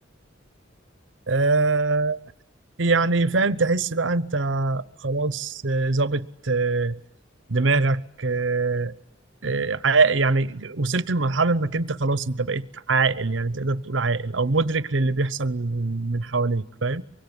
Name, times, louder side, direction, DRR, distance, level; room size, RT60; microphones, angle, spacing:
voice 1, 1.3-2.2 2.8-7.0 7.5-8.9 9.4-17.0, right 3 dB, 75° right, 1.0 m, -23 dB
24.5 x 23.0 x 9.7 m
head